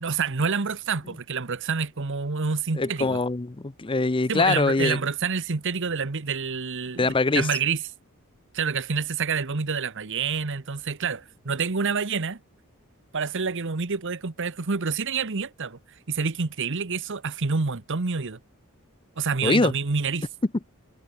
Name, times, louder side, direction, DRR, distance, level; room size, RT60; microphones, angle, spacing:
voice 1, 0.0-3.2 4.3-7.8 8.5-12.4 13.1-15.8 16.1-18.4 19.2-20.3, right 5 dB, 60° right, 1.1 m, -28 dB
voice 2, 2.8-5.0 7.0-7.5 19.4-19.7, left 3 dB, 25° left, 0.6 m, -23 dB
head